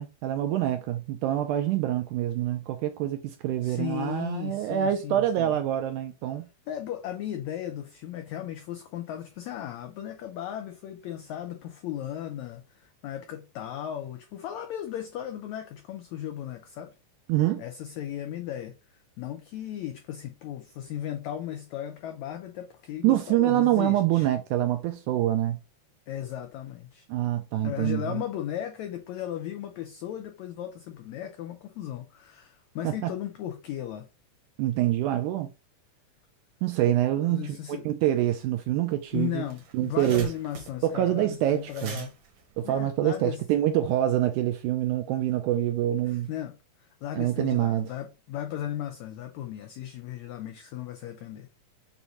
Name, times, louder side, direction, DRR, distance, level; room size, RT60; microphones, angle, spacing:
voice 1, 0.0-6.5 17.3-17.6 23.0-25.6 27.1-28.2 32.8-33.1 34.6-35.5 36.6-39.4 39.7-40.3 40.8-42.1 42.6-46.3 47.1-47.9, right 12 dB, 80° right, 1.8 m, -26 dB
voice 2, 3.6-5.6 6.7-16.9 17.6-24.3 26.1-27.1 27.6-34.1 37.2-37.9 39.1-42.1 42.6-43.4 46.0-51.5, left 11 dB, 90° left, 1.6 m, -36 dB
sound 1, 38.9-39.0 39.3-43.5, right 5 dB, 65° right, 1.6 m, -45 dB
6.9 x 2.6 x 3.0 m
omnidirectional pair, 3.9 m